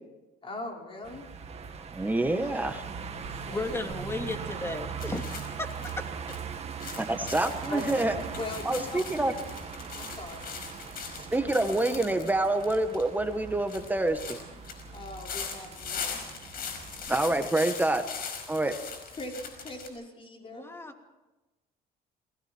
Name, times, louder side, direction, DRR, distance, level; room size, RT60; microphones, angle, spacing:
voice 1, 0.4-1.3 2.4-2.5 3.1-3.8 7.7-7.8 8.4-9.4 10.0-10.4 14.9-16.2 19.1-20.7, left 2 dB, 30° left, 1 dB, 5.4 m, -40 dB
sound 1, 1.0-17.4, right 6 dB, 40° right, 2.0 m, -40 dB
voice 2, 1.9-2.8 7.0-8.1 8.6-9.3 11.3-14.4 17.1-18.1 18.5-18.8, right 2 dB, 10° right, 7 dB, 1.5 m, -27 dB
voice 3, 3.5-5.7 6.0-6.4 20.5-20.9, left 2 dB, 15° left, 5 dB, 2.6 m, -35 dB
sound 2, 5.0-19.9, left 6 dB, 60° left, 5.1 m, -41 dB
28.5 x 20.0 x 4.5 m, 1.1 s
cardioid pair, 110°, 17 cm